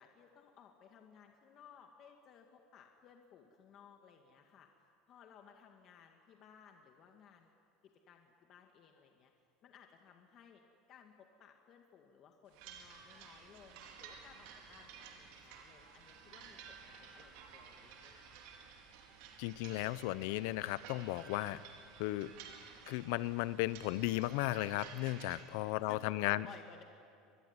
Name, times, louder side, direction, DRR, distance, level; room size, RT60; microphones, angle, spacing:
voice 1, 0.0-4.7 5.1-7.5 8.1-9.3 9.6-10.6 10.9-18.7 25.3-26.8, left 7 dB, 40° left, 3 dB, 1.9 m, -59 dB
sound 1, 12.5-25.4, right 6 dB, 70° right, 4.6 m, -54 dB
voice 2, 19.4-21.6 22.0-22.3 22.9-26.5, left 17 dB, 70° left, 16 dB, 0.8 m, -35 dB
25.0 x 22.5 x 9.8 m, 2.5 s
cardioid pair, 155°, 0 cm